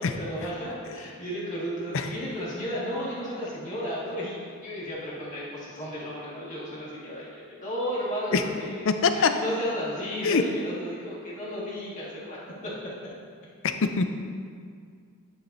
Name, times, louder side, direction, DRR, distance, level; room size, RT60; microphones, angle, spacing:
voice 1, 0.0-12.7, equal, 35° left, -7 dB, 1.9 m, -34 dB
voice 2, 8.9-9.3 10.2-10.4 13.6-14.0, left 5 dB, 60° left, 8 dB, 0.5 m, -23 dB
10.5 x 7.0 x 2.7 m, 2.2 s
head